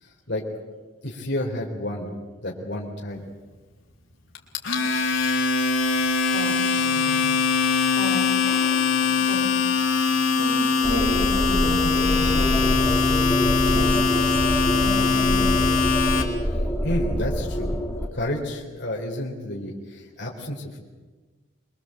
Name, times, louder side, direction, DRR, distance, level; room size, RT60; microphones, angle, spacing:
voice 1, 0.0-0.4 1.0-3.3 16.4-17.8 18.1-20.8, left 1 dB, 60° left, -2 dB, 4.1 m, -31 dB
Domestic sounds home sounds, 4.3-16.2, left 5 dB, 80° left, 4.1 m, -22 dB
voice 2, 6.3-7.3 7.9-9.5 9.9-13.1 13.6-14.4 14.7-15.7, equal, 70° right, 0 dB, 6.7 m, -34 dB
sound 1, 10.8-18.1, equal, 15° left, 2.4 m, -26 dB
25.5 x 23.0 x 8.0 m, 1.3 s
head